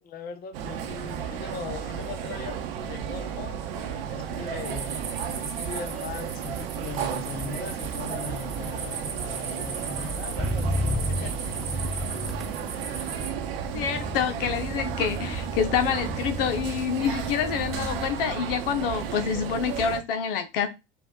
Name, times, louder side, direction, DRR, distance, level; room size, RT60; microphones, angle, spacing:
voice 1, 0.0-5.0 5.4-11.4, left 6 dB, 30° left, 0.8 m, -40 dB
sound 1, 0.5-20.0, right 8 dB, 65° right, 0.9 m, -33 dB
Motor vehicle (road), 3.1-3.5 3.8-18.3 18.6-19.1, equal, ahead, 0.4 m, -35 dB
sound 2, 4.6-13.3, right 5 dB, 85° right, 1.3 m, -38 dB
voice 2, 13.7-20.7, left 7 dB, 65° left, 0.8 m, -27 dB
4.6 x 2.4 x 3.7 m
hypercardioid pair, 85°, 31 cm